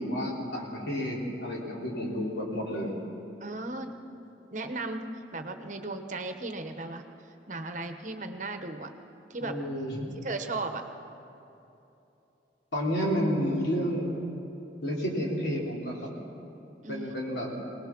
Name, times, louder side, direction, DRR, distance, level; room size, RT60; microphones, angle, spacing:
voice 1, 0.0-2.9 9.4-10.1 12.7-14.1 14.8-16.1 16.9-17.7, equal, 75° left, -3 dB, 3.7 m, -30 dB
voice 2, 3.4-3.9 4.5-7.0 7.5-8.9 9.3-9.5 10.2-10.8 16.8-17.1, right 2 dB, 40° right, 7 dB, 1.0 m, -36 dB
23.5 x 19.0 x 6.0 m, 3.0 s
head